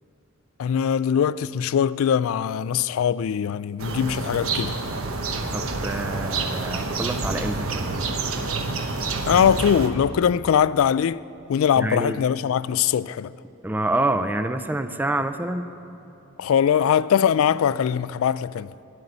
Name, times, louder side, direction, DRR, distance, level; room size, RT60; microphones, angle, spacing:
voice 1, 0.6-4.8 9.3-11.2 11.5-13.3 16.4-18.7, left 8 dB, 80° left, 0.3 m, -21 dB
sound 1, 3.8-9.9, right 3 dB, 90° right, 1.0 m, -28 dB
voice 2, 5.5-7.9 11.8-12.2 13.6-15.7, right 2 dB, 10° right, 0.4 m, -27 dB
12.0 x 7.9 x 9.9 m
head